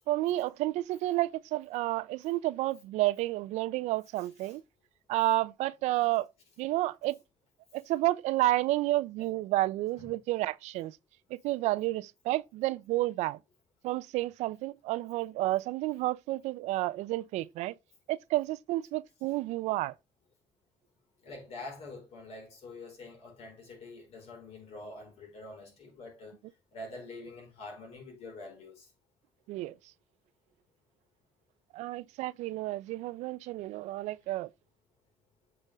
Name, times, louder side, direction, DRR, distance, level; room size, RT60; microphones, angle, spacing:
voice 1, 0.1-4.6 5.1-6.3 6.6-7.2 7.7-11.0 11.3-13.4 13.8-17.7 18.1-19.9 29.5-29.7 31.7-34.5, right 17 dB, 90° right, 0.5 m, -30 dB
voice 2, 21.2-26.4 26.7-28.9, left 2 dB, 65° left, 4.7 m, -46 dB
8.4 x 5.3 x 3.5 m
cardioid pair, 105°, 11 cm